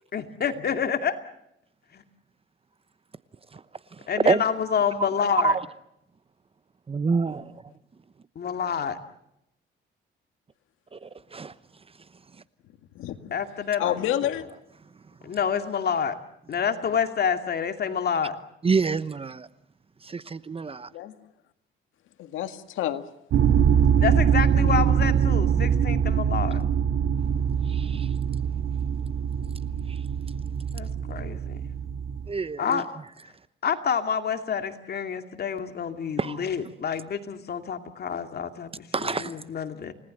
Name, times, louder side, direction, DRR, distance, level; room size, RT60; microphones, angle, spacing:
voice 1, 0.1-1.1 1.9-2.0 4.1-5.5 8.4-8.9 13.3-14.3 15.2-16.2 16.5-18.4 24.0-26.6 30.7-31.6 32.6-32.8 33.6-39.9, left 7 dB, 55° left, 2.5 m, -28 dB
voice 2, 3.9-4.4 5.0-5.1 5.4-5.6 6.9-7.6 10.9-11.5 18.6-19.5 20.0-20.9 27.6-28.1 29.9-30.0 32.3-32.8 36.2-36.4 38.9-39.3, right 4 dB, 30° right, 0.9 m, -27 dB
voice 3, 13.0-13.3 13.8-14.5 20.9-21.2 22.2-23.0, left 12 dB, 90° left, 2.0 m, -29 dB
sound 1, 23.3-32.3, right 8 dB, 80° right, 2.4 m, -23 dB
30.0 x 19.0 x 7.9 m
cardioid pair, 90°, 20 cm